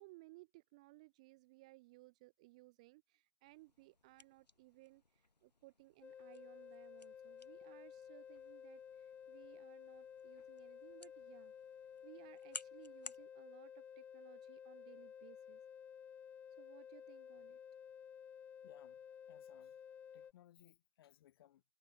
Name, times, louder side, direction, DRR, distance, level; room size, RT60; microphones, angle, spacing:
voice 1, 0.0-11.5 12.0-15.6 16.6-17.6, right 23 dB, 10° right, 0.3 m, -62 dB
sound 1, 3.5-13.3, left 3 dB, 75° left, 3.3 m, -58 dB
sound 2, 6.0-20.3, left 8 dB, 5° left, 0.7 m, -54 dB
voice 2, 18.6-19.8 20.1-21.6, left 12 dB, 35° left, 1.7 m, -65 dB
figure-of-eight pair, 135°, 21 cm